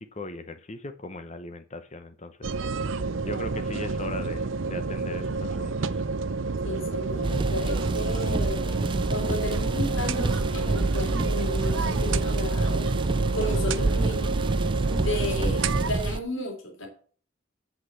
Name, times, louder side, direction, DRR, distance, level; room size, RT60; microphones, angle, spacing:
voice 1, 0.0-2.6 2.9-6.1, left 2 dB, 35° left, 9 dB, 0.8 m, -39 dB
sound 1, 2.4-15.9, right 4 dB, 70° right, 0.6 m, -29 dB
voice 2, 6.6-12.9 13.3-14.4 14.7-16.9, left 1 dB, 80° left, 1 dB, 3.5 m, -33 dB
sound 2, 7.2-16.2, right 2 dB, 25° right, 0.4 m, -27 dB
8.2 x 6.3 x 7.5 m, 0.43 s
head